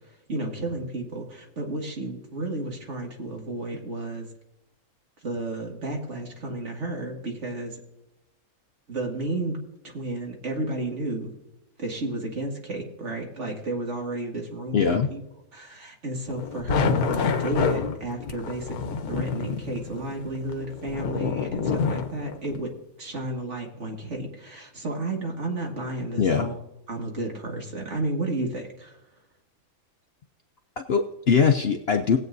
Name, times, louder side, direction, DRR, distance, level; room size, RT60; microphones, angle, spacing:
voice 1, 0.3-4.3 5.2-7.8 8.9-9.6 9.8-11.3 11.8-15.2 15.5-22.7 23.0-26.6 26.9-29.0, right 2 dB, 50° right, 1 dB, 2.2 m, -32 dB
voice 2, 14.7-15.1 17.1-17.4 26.2-26.5 30.8-32.2, left 6 dB, 55° left, 6 dB, 0.7 m, -22 dB
sound 1, 16.3-22.6, left 5 dB, 80° left, 1.3 m, -28 dB
19.5 x 8.3 x 2.6 m, 0.88 s
omnidirectional pair, 1.6 m